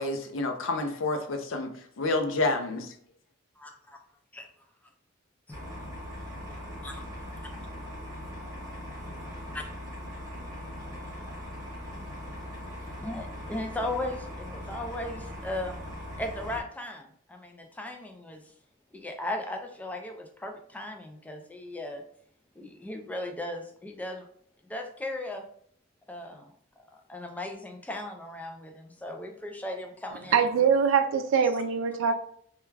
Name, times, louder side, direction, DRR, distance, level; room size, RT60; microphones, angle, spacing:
voice 1, 0.0-2.9, left 2 dB, 80° left, 4 dB, 0.5 m, -29 dB
voice 2, 3.6-4.0 4.3-4.5 5.5-5.6 6.8-7.0 9.5-9.6 13.0-15.8 16.2-18.4 18.9-22.0 22.6-24.3 24.7-25.4 26.1-26.5 26.8-30.5, left 1 dB, 10° left, 3 dB, 0.3 m, -37 dB
sound 1, 5.5-16.6, left 1 dB, 20° right, 0.8 m, -40 dB
voice 3, 30.3-32.2, right 6 dB, 75° right, 8 dB, 0.3 m, -23 dB
2.3 x 2.2 x 3.2 m, 0.63 s
head